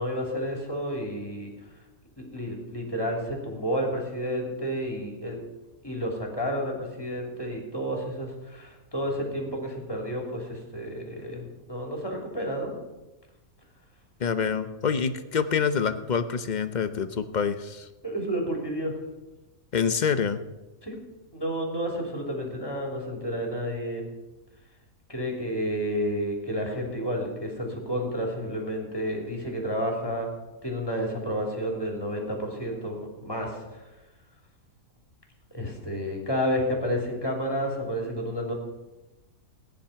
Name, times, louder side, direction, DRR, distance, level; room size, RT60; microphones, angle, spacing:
voice 1, 0.0-1.5 2.3-5.4 5.8-12.7 18.0-18.9 20.8-21.0 21.3-24.1 25.1-30.3 30.6-33.8 35.5-38.5, equal, 15° left, 0 dB, 3.3 m, -30 dB
voice 2, 14.2-17.9 19.7-20.4, left 6 dB, 40° left, 10 dB, 0.7 m, -26 dB
16.0 x 10.0 x 5.8 m, 1.1 s
omnidirectional pair, 1.5 m